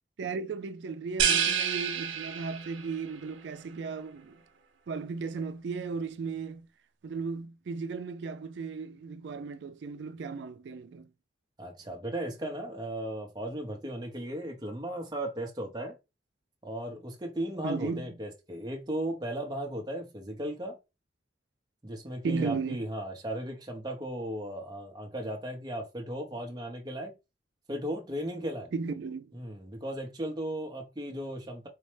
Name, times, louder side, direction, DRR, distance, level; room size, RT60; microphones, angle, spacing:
voice 1, 0.2-4.4 4.9-6.7 7.0-11.1 17.6-18.1 22.2-22.8 28.7-29.3, right 4 dB, 65° right, 0.3 m, -35 dB
sound 1, 1.2-2.9, right 7 dB, 85° right, 0.8 m, -28 dB
voice 2, 11.6-15.9 16.6-20.8 21.8-27.1 27.7-28.7 29.3-31.7, right 1 dB, 20° right, 0.6 m, -36 dB
4.0 x 2.1 x 3.1 m
head